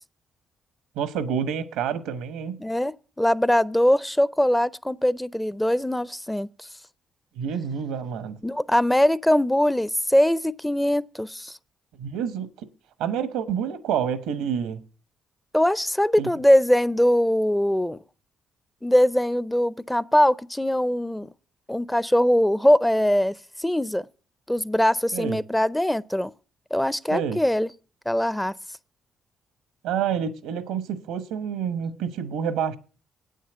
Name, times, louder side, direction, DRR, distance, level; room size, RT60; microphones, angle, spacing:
voice 1, 1.0-2.6 7.4-8.4 12.0-12.5 13.0-14.8 16.2-16.3 25.1-25.4 27.1-27.4 29.8-32.8, right 8 dB, 85° right, 1.0 m, -28 dB
voice 2, 2.6-6.7 8.4-11.6 15.5-18.0 18.8-21.3 21.7-24.1 24.5-26.3 26.7-27.7 28.1-28.5, left 1 dB, 5° left, 0.5 m, -22 dB
8.7 x 6.5 x 7.9 m
supercardioid pair, 60°, 0 cm